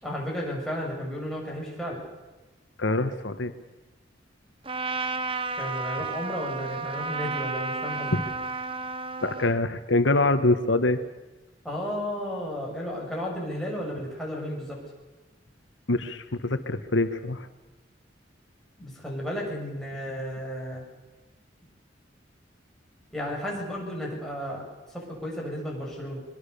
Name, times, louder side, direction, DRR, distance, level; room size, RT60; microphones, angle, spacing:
voice 1, 0.0-2.1 5.6-8.1 11.6-14.8 18.8-20.8 23.1-26.2, equal, ahead, -3 dB, 7.3 m, -33 dB
voice 2, 2.8-3.5 8.1-8.2 9.2-11.0 15.9-17.5, left 2 dB, 80° left, 9 dB, 1.5 m, -24 dB
Trumpet, 4.6-9.6, right 4 dB, 30° right, 1.3 m, -32 dB
23.5 x 23.0 x 7.0 m, 1.1 s
head